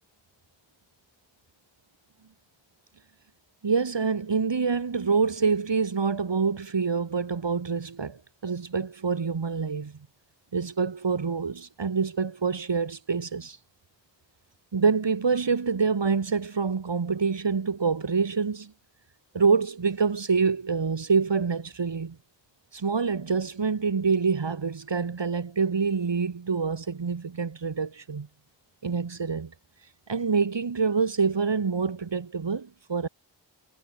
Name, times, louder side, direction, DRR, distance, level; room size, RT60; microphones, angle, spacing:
voice 1, 3.6-9.9 10.5-13.6 14.7-18.7 19.3-22.2 22.7-28.3 28.8-29.5 30.1-33.1, right 5 dB, 70° right, 1.6 m, -26 dB
wide cardioid pair, 50°, 45 cm